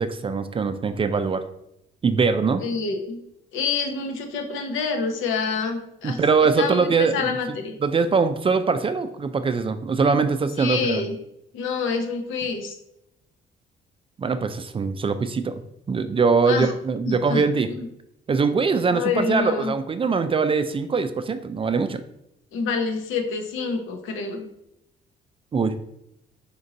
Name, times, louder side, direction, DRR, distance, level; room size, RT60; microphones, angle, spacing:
voice 1, 0.0-1.4 2.0-2.6 6.0-7.3 7.8-11.0 14.2-15.6 15.9-17.7 18.3-22.0 25.5-25.7, right 4 dB, 25° right, 10 dB, 0.3 m, -22 dB
voice 2, 2.6-3.2 3.5-6.2 6.6-7.8 10.6-11.2 11.5-12.8 16.5-16.7 17.1-17.4 17.7-17.9 18.9-19.7 22.5-24.5, left 5 dB, 85° left, 4 dB, 0.8 m, -27 dB
4.4 x 2.5 x 4.0 m, 0.81 s
cardioid pair, 90°, 20 cm